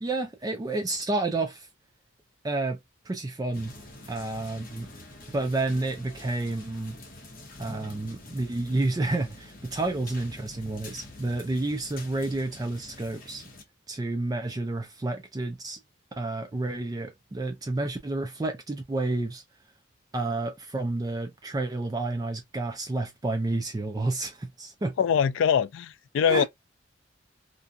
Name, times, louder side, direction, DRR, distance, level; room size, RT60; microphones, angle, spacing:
voice 1, 0.0-1.7 2.4-2.8 3.0-3.7 4.1-4.9 5.3-7.0 7.6-13.4 13.9-15.8 16.2-19.4 20.1-24.9 26.3-26.4, right 2 dB, 20° right, 0.3 m, -30 dB
sound 1, 3.5-13.6, left 2 dB, 45° left, 0.8 m, -46 dB
voice 2, 25.0-26.4, left 7 dB, 70° left, 0.3 m, -23 dB
2.5 x 2.3 x 2.5 m
head